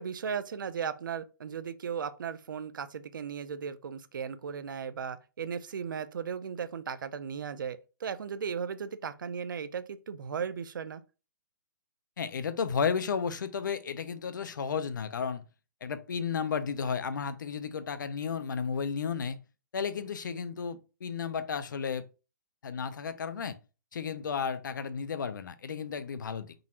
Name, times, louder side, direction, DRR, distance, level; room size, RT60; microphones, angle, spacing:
voice 1, 0.0-11.0, right 7 dB, 90° right, 0.5 m, -36 dB
voice 2, 12.2-15.4 15.8-19.4 19.7-22.1 22.6-23.5 23.9-26.5, left 6 dB, 70° left, 0.6 m, -33 dB
3.9 x 2.5 x 4.2 m
hypercardioid pair, 180°, 10 cm